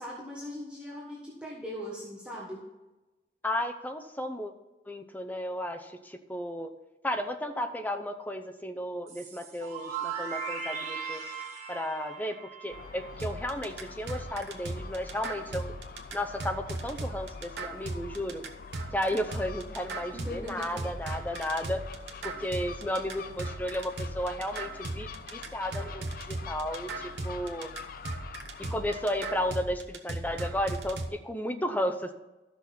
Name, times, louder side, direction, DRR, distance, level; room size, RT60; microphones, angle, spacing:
voice 1, 0.0-2.6 20.1-20.7, equal, 5° right, -5 dB, 1.3 m, -40 dB
voice 2, 3.4-4.5 4.9-6.7 7.0-11.2 11.7-12.4 12.6-15.7 16.1-18.4 18.9-21.8 22.2-27.7 28.6-32.1, left 1 dB, 10° left, 6 dB, 0.6 m, -33 dB
sound 1, 9.1-13.8, right 6 dB, 40° right, 1.8 m, -38 dB
Gull seagull, 12.7-29.6, left 5 dB, 55° left, 0.5 m, -46 dB
sound 2, 13.2-31.1, right 2 dB, 65° right, 1.0 m, -37 dB
13.0 x 6.1 x 4.3 m, 1.1 s
head